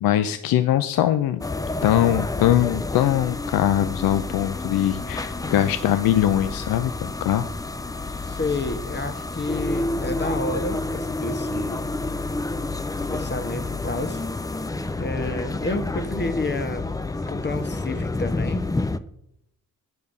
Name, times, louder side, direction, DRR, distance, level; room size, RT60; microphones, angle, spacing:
voice 1, 0.0-1.4 1.8-7.5, left 12 dB, 70° left, 11 dB, 0.6 m, -21 dB
sound 1, 1.4-19.0, left 2 dB, 10° left, 0.5 m, -29 dB
voice 2, 8.2-11.8 13.1-14.2 15.0-16.9 17.2-18.6, left 2 dB, 30° left, 10 dB, 1.3 m, -30 dB
8.6 x 6.6 x 5.3 m, 0.78 s
supercardioid pair, 50°, 37 cm